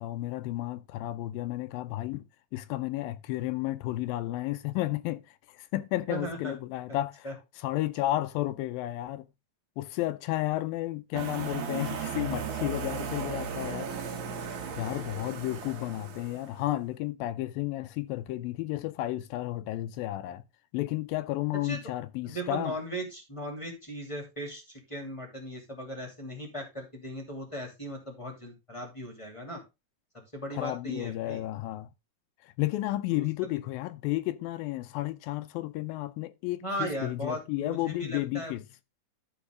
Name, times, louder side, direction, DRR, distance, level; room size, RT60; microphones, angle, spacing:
voice 1, 0.0-2.2 2.5-9.3 9.8-13.9 14.8-20.4 20.7-22.8 30.5-31.9 32.4-38.7, left 16 dB, 85° left, 2.4 m, -32 dB
voice 2, 6.1-6.5 7.2-7.3 21.5-21.8 22.3-29.6 30.3-31.4 33.1-33.2 36.6-38.5, right 1 dB, 10° left, 2.0 m, -37 dB
sound 1, 11.1-16.7, right 6 dB, 60° right, 2.8 m, -36 dB
13.0 x 4.7 x 3.7 m
omnidirectional pair, 4.1 m